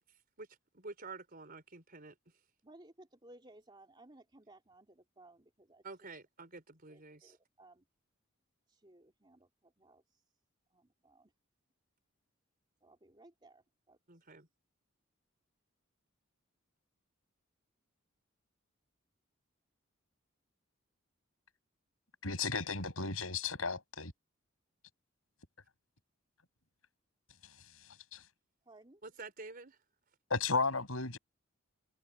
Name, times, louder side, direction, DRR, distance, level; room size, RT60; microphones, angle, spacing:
voice 1, 0.7-2.1 5.8-7.4 14.1-14.5 29.0-29.8, right 3 dB, 45° right, 4.2 m, -49 dB
voice 2, 2.6-4.9 5.2-5.4 5.7-5.8 6.9-7.7 8.8-9.4 9.8-10.0 11.0-11.1 12.8-13.6 13.9-14.0 28.7-29.0, right 2 dB, 25° right, 3.0 m, -58 dB
voice 3, 22.2-24.1 28.1-28.2 30.3-31.2, left 4 dB, 85° left, 5.8 m, -34 dB
head